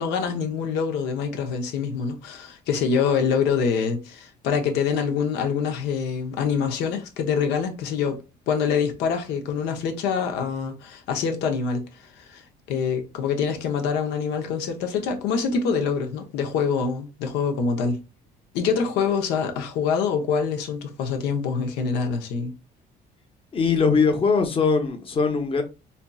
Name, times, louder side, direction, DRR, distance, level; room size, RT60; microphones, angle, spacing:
voice 1, 0.0-11.8 12.2-12.4 12.7-18.0 18.5-22.5, left 6 dB, 85° left, 0.8 m, -25 dB
voice 2, 23.5-25.6, left 5 dB, 35° left, 0.8 m, -21 dB
4.4 x 2.7 x 2.3 m
cardioid pair, 110°, 17 cm